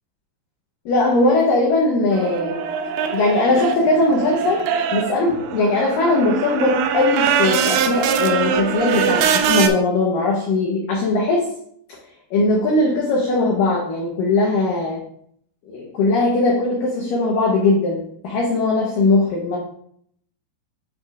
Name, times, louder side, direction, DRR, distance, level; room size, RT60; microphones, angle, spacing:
voice 1, 0.9-2.6 3.1-4.7 4.9-11.5 12.3-15.0 15.7-19.6, left 2 dB, 80° left, -2 dB, 1.9 m, -19 dB
sound 1, 2.1-9.7, right 7 dB, 85° right, 2.9 m, -22 dB
9.4 x 4.7 x 2.4 m, 0.67 s
omnidirectional pair, 5.2 m